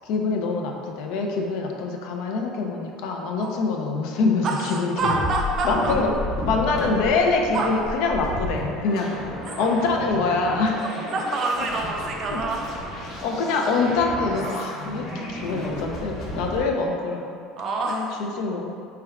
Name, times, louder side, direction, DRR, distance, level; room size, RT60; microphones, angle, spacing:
voice 1, 0.0-5.2 5.6-6.1 6.4-10.8 12.3-12.4 13.2-17.4 17.9-18.8, left 4 dB, 75° left, 2 dB, 0.4 m, -25 dB
voice 2, 4.4-5.9 7.5-7.7 9.6-9.7 11.1-12.6 14.9-15.5 17.6-18.1, right 3 dB, 45° right, 0 dB, 0.4 m, -27 dB
sound 1, 5.0-16.6, left 1 dB, 55° left, 0.9 m, -33 dB
3.3 x 2.3 x 3.4 m, 2.4 s
supercardioid pair, 105°, 0 cm